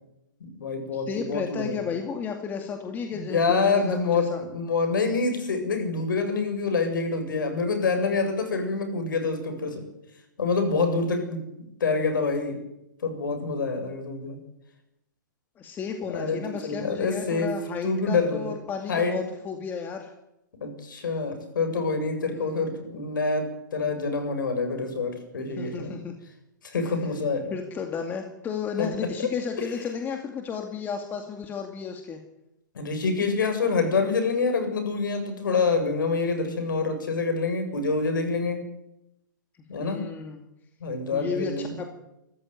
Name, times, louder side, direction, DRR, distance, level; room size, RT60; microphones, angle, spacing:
voice 1, 0.4-1.9 3.2-9.8 10.4-11.4 11.8-12.6 13.0-14.4 16.1-17.6 17.8-18.5 18.9-19.2 20.6-26.0 26.6-27.5 28.8-28.9 29.2-29.3 32.7-38.6 39.7-40.1 40.8-41.7, left 4 dB, 80° left, 6 dB, 7.8 m, -26 dB
voice 2, 0.9-4.4 15.6-20.1 22.3-22.7 25.6-26.1 27.5-32.2 39.8-40.4 41.1-41.9, left 6 dB, 15° left, 4 dB, 2.3 m, -33 dB
26.0 x 14.0 x 9.5 m, 0.87 s
hypercardioid pair, 150°, 11 cm